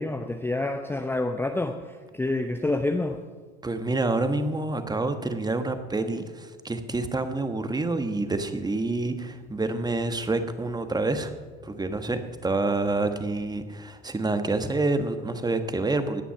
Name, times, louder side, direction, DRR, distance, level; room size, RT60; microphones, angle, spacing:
voice 1, 0.0-3.2, left 2 dB, 5° left, 6 dB, 0.8 m, -28 dB
voice 2, 3.6-11.3 11.6-16.2, right 2 dB, 10° right, 9 dB, 1.4 m, -27 dB
17.0 x 10.0 x 5.9 m, 1.5 s
figure-of-eight pair, 70°, 33 cm